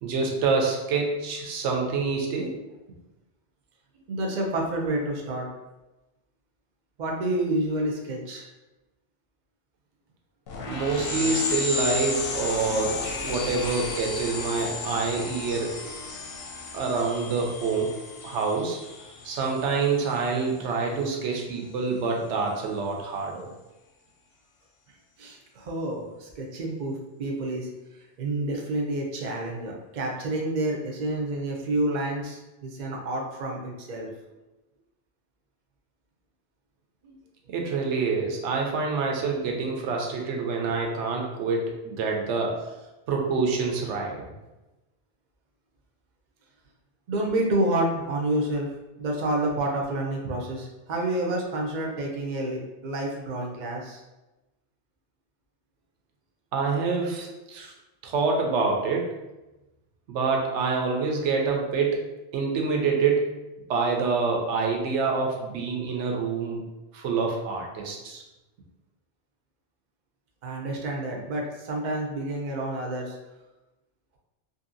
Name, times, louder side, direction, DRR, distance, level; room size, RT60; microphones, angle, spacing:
voice 1, 0.0-2.5 10.6-15.7 16.7-17.9 18.2-18.8 19.2-23.5 37.5-42.5 43.1-44.3 56.5-57.7 58.0-59.1 60.1-62.0 62.3-63.3 63.7-66.6 66.9-68.2, right 4 dB, 80° right, 1 dB, 0.9 m, -26 dB
voice 2, 4.1-5.5 7.0-8.5 25.2-27.7 28.2-34.1 37.0-37.2 47.1-48.7 49.0-54.0 70.4-73.2, right 1 dB, 55° right, 0 dB, 0.6 m, -29 dB
sound 1, 10.5-20.6, left 3 dB, 65° left, 0.7 m, -33 dB
2.7 x 2.7 x 2.5 m, 1.0 s
omnidirectional pair, 1.2 m